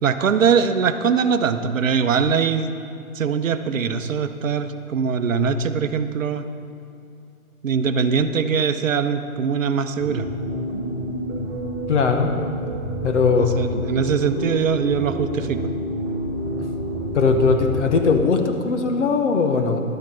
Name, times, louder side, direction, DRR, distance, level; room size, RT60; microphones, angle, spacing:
voice 1, 0.0-2.7 3.1-6.5 7.6-10.3 13.4-15.6, right 6 dB, 65° right, 10 dB, 0.8 m, -22 dB
sound 1, 10.0-18.0, equal, 15° right, 1.9 m, -29 dB
voice 2, 11.9-12.3 13.0-13.5 17.1-19.8, left 4 dB, 55° left, 5 dB, 1.3 m, -19 dB
12.0 x 7.3 x 5.4 m, 2.5 s
hypercardioid pair, 155°, 43 cm